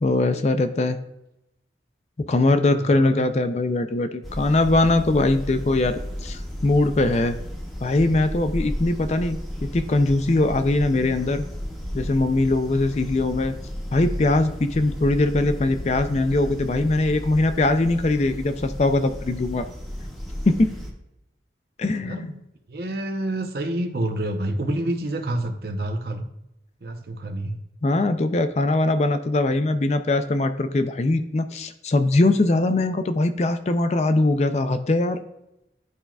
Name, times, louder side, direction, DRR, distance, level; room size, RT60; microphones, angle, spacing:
voice 1, 0.0-1.0 2.3-7.4 7.8-11.4 11.9-13.5 13.9-19.7 20.5-20.7 21.8-22.3 27.8-35.2, left 2 dB, 40° left, 9 dB, 0.4 m, -21 dB
voice 2, 2.8-3.3 22.0-22.4 22.7-26.3 26.8-27.6, right 1 dB, 55° right, 6 dB, 0.7 m, -28 dB
sound 1, 4.2-20.9, equal, ahead, 0.9 m, -34 dB
11.0 x 4.4 x 2.3 m, 0.86 s
head